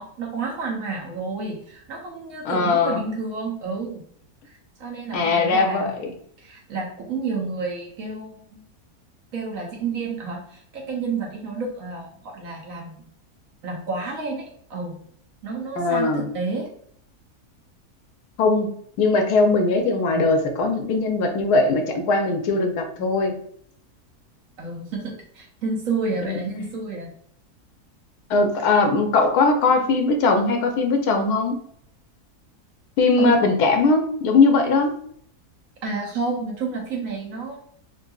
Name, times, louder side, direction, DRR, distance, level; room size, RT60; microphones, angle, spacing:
voice 1, 0.0-4.1 4.8-8.6 9.3-13.0 13.6-14.9 15.4-16.7 24.6-27.1 33.2-33.4 35.8-37.6, right 4 dB, 60° right, -1 dB, 1.2 m, -30 dB
voice 2, 2.4-3.0 5.1-6.1 15.8-16.3 18.4-23.4 26.2-26.4 28.3-31.6 33.0-34.9, left 3 dB, 80° left, 5 dB, 1.2 m, -20 dB
3.8 x 2.8 x 2.3 m, 0.64 s
omnidirectional pair, 1.7 m